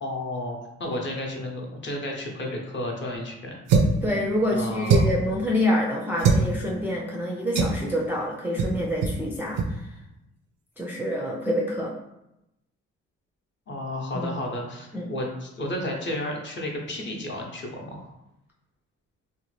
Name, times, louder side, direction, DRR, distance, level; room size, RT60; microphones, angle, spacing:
voice 1, 0.0-3.6 4.5-5.1 13.7-18.0, left 1 dB, 40° left, 0 dB, 0.7 m, -32 dB
sound 1, 3.7-4.0 4.9-5.3 6.2-6.5 7.6-7.8 8.6-8.8 9.0-9.2 9.5-9.7, right 4 dB, 90° right, 0.5 m, -21 dB
voice 2, 4.0-9.9 10.8-11.9 14.1-14.3 14.9-15.1, left 1 dB, 5° right, -3 dB, 0.4 m, -27 dB
2.7 x 2.2 x 3.2 m, 0.87 s
cardioid pair, 90°, 30 cm